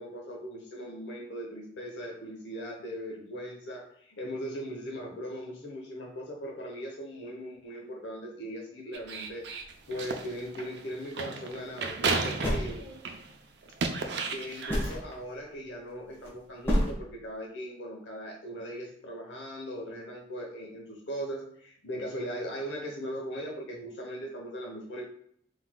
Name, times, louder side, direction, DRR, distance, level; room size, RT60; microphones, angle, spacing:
voice 1, 0.0-9.5 9.9-12.8 13.9-25.0, equal, 85° left, -1 dB, 0.9 m, -39 dB
A busy man, 8.9-13.3 13.6-14.9, right 4 dB, 75° right, 0.5 m, -33 dB
sound 1, 11.6-12.0 12.4-13.3 14.2-14.3 14.7-15.1 16.0-16.3 16.6-16.9, equal, 15° left, 1.2 m, -28 dB
4.5 x 4.0 x 2.2 m, 0.65 s
head